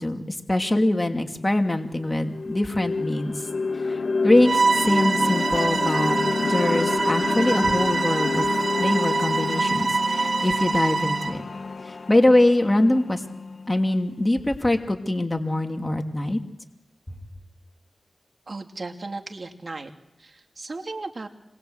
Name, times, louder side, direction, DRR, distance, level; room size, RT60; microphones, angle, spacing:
voice 1, 0.0-3.3 3.9-11.4 11.8-13.2 13.7-16.4, left 1 dB, 25° left, 4 dB, 2.6 m, -23 dB
sound 1, 1.4-1.5 1.9-14.0, left 4 dB, 65° left, 1.0 m, -29 dB
Bowed string instrument, 4.4-11.4, right 3 dB, 70° right, 1.4 m, -25 dB
voice 2, 18.5-19.9 20.2-21.3, right 3 dB, 55° right, 4 dB, 2.7 m, -36 dB
26.5 x 22.0 x 8.0 m, 0.86 s
cardioid pair, 55°, 0 cm